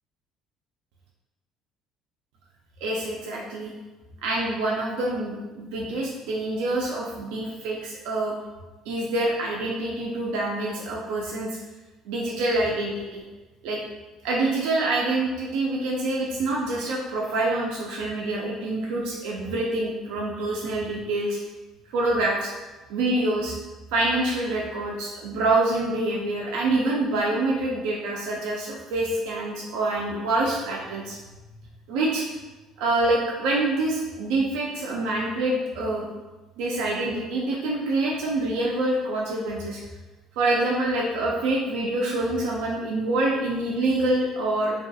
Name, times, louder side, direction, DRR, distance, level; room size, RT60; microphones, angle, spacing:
voice 1, 2.8-3.7 4.2-8.4 8.9-11.6 12.1-13.2 13.6-13.8 14.2-21.4 21.9-22.5 22.9-23.6 23.9-31.2 31.9-32.2 32.8-36.1 36.6-39.8 40.4-44.7, right 2 dB, 85° right, -3 dB, 0.3 m, -26 dB
2.3 x 2.2 x 2.6 m, 1.2 s
cardioid pair, 125°, 0 cm